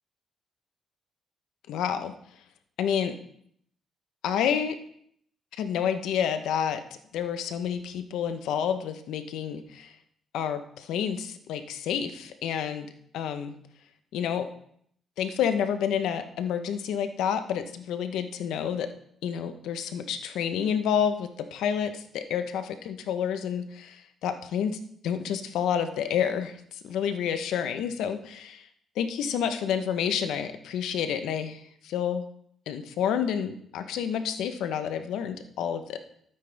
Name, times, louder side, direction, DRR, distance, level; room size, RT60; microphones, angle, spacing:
voice 1, 1.7-2.1 2.8-3.1 4.2-4.8 5.6-6.8 7.1-9.9 10.3-12.9 13.1-13.6 14.1-14.5 15.2-18.9 19.2-28.7 29.0-32.2 32.7-36.0, left 8 dB, 85° left, 9 dB, 1.0 m, -29 dB
12.5 x 9.1 x 3.5 m, 0.67 s
cardioid pair, 90°, 0 cm